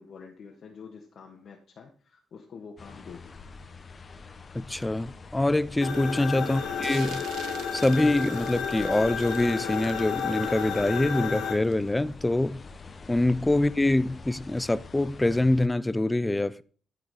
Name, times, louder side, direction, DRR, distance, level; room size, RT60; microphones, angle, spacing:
voice 1, 0.0-3.3 6.5-6.7, left 5 dB, 55° left, 1.8 m, -47 dB
sound 1, 2.8-15.7, left 4 dB, 35° left, 1.1 m, -45 dB
voice 2, 4.5-7.2 7.7-12.6 13.1-16.6, left 2 dB, 10° left, 0.5 m, -25 dB
sound 2, 5.8-11.5, left 6 dB, 80° left, 2.3 m, -32 dB
sound 3, 6.8-12.1, right 8 dB, 75° right, 1.2 m, -47 dB
13.5 x 5.0 x 4.9 m
cardioid pair, 90°, 0 cm